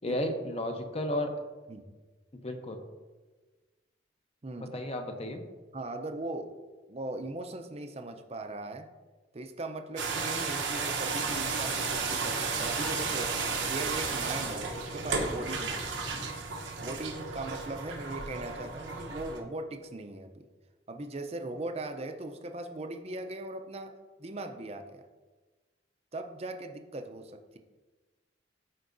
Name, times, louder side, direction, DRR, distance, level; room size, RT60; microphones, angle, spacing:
voice 1, 0.0-1.4 2.3-2.8 4.6-5.4, left 1 dB, 35° left, 5 dB, 0.8 m, -33 dB
voice 2, 4.4-4.8 5.7-6.5 6.9-8.9 9.3-13.3 13.7-16.2 16.8-20.5 20.9-23.9 24.2-25.0 26.1-27.6, right 2 dB, 35° right, 6 dB, 0.6 m, -39 dB
sound 1, 10.0-19.4, right 4 dB, 90° right, 1.0 m, -33 dB
sound 2, 11.2-16.3, left 1 dB, 70° left, 0.9 m, -47 dB
13.0 x 4.6 x 2.6 m, 1.3 s
head